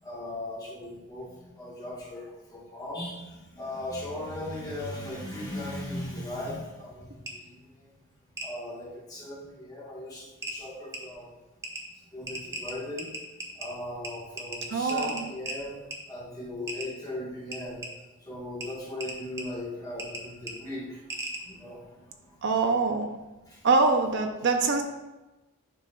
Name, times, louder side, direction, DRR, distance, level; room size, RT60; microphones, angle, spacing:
voice 1, 0.0-8.0 8.4-11.3 12.1-13.1 13.5-17.9 18.2-21.1 21.4-22.4 23.4-23.7, left 1 dB, 15° left, -4 dB, 1.2 m, -38 dB
sound 1, 7.3-7.4 8.4-8.5 9.8-9.9 10.4-10.6 10.9-11.0 11.6-11.8 12.3-13.7 14.0-14.1 14.4-15.6 15.9-16.0 16.7-16.9 17.5-17.9 18.6-18.7 19.0-19.4 20.0-20.2 20.5-20.6 21.1-21.4, right 1 dB, 15° right, 0.7 m, -36 dB
voice 2, 14.7-15.2 22.4-23.1 23.6-24.8, right 3 dB, 50° right, 4 dB, 0.5 m, -24 dB
10.0 x 5.3 x 2.3 m, 1.1 s
head